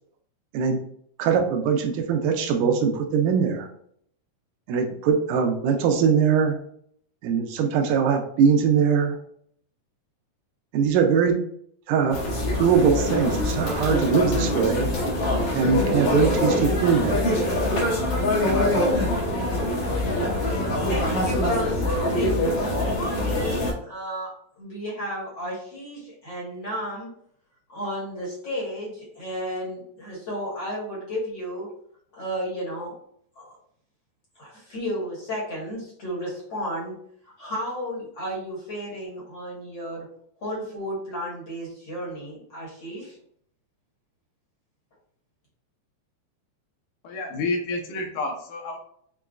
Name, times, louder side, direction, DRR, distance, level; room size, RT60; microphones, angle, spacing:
voice 1, 1.2-3.7 4.7-6.6 7.2-9.2 10.7-11.4 11.9-12.2 12.6-14.9 15.5-17.4, right 6 dB, 85° right, 4 dB, 2.2 m, -22 dB
sound 1, 12.1-23.7, left 1 dB, 60° left, 1.8 m, -24 dB
voice 2, 20.9-27.1 27.7-31.7 32.1-32.9 33.3-33.6 34.4-36.9 37.4-40.1 40.4-43.2, equal, 45° left, -6 dB, 1.6 m, -33 dB
voice 3, 47.0-48.8, left 2 dB, 85° left, 2 dB, 2.4 m, -29 dB
6.5 x 2.3 x 2.4 m, 0.64 s
omnidirectional pair, 3.7 m